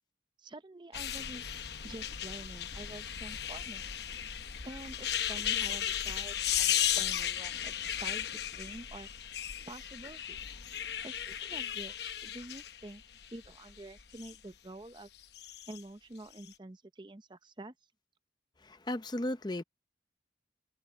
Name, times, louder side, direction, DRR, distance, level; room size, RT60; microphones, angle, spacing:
voice 1, 0.4-1.4 1.8-3.9 4.6-9.1 9.7-10.4 11.0-13.0 13.3-15.1 15.7-17.7, right 2 dB, 25° right, 0.7 m, -48 dB
sound 1, 0.9-14.4 15.2-15.8 16.3-16.5, left 10 dB, 65° left, 0.9 m, -35 dB
voice 2, 18.6-19.6, left 1 dB, 25° left, 0.6 m, -35 dB
head